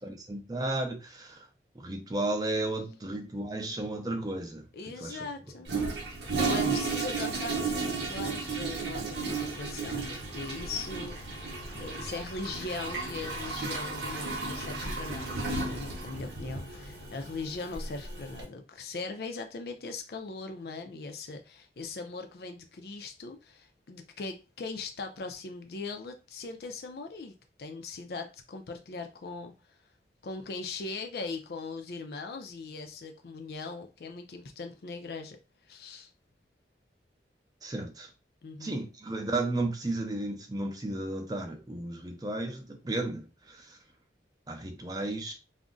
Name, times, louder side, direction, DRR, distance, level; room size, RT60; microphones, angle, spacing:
voice 1, 0.0-1.4 1.8-4.6 5.0-5.2 37.6-38.1 38.6-43.8 44.5-45.3, right 2 dB, 20° right, 0.5 m, -33 dB
voice 2, 4.7-11.5 11.8-29.8 30.2-35.4 35.7-36.1 38.4-38.8, left 3 dB, 60° left, 0.4 m, -40 dB
Toilet flush, 5.7-18.4, right 3 dB, 80° right, 0.8 m, -34 dB
2.4 x 2.1 x 3.7 m
head